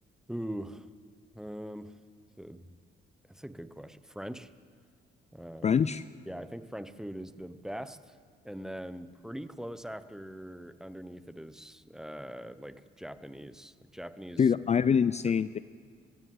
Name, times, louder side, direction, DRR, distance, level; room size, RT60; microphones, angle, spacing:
voice 1, 0.3-0.9 1.3-1.9 2.4-2.8 3.3-4.5 5.3-5.8 6.3-8.2 8.4-14.4, equal, 5° right, 12 dB, 1.0 m, -42 dB
voice 2, 5.6-6.0 14.4-15.6, left 7 dB, 35° left, 15 dB, 0.5 m, -25 dB
23.5 x 15.5 x 7.9 m, 2.1 s
cardioid pair, 90°, 20 cm